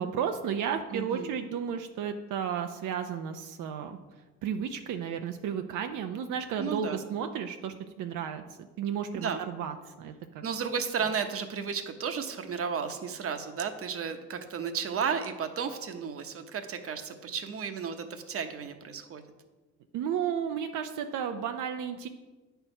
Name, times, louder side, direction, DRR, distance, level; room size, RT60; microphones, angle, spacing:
voice 1, 0.0-4.0 4.4-10.4 19.9-22.1, right 8 dB, 85° right, 6 dB, 0.6 m, -33 dB
voice 2, 0.9-1.3 6.6-7.0 9.1-9.4 10.4-19.2, right 6 dB, 50° right, 7 dB, 0.9 m, -33 dB
8.8 x 4.6 x 5.4 m, 1.2 s
cardioid pair, 90°, 30 cm